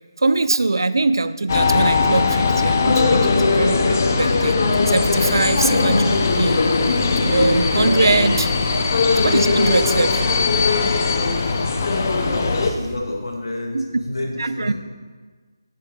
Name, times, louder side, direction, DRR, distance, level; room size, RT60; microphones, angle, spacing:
voice 1, 0.2-4.6 4.9-6.6 7.2-8.5 9.2-10.2 13.7-13.8 14.4-14.7, right 3 dB, 75° right, 14 dB, 0.3 m, -22 dB
sound 1, 1.5-12.7, left 4 dB, 40° left, 0.5 m, -19 dB
sound 2, 5.1-12.9, right 1 dB, 35° right, 1.0 m, -35 dB
voice 2, 11.9-14.7, left 1 dB, 80° left, 1 dB, 1.3 m, -30 dB
6.6 x 5.2 x 3.6 m, 1.5 s
figure-of-eight pair, 160°, 2 cm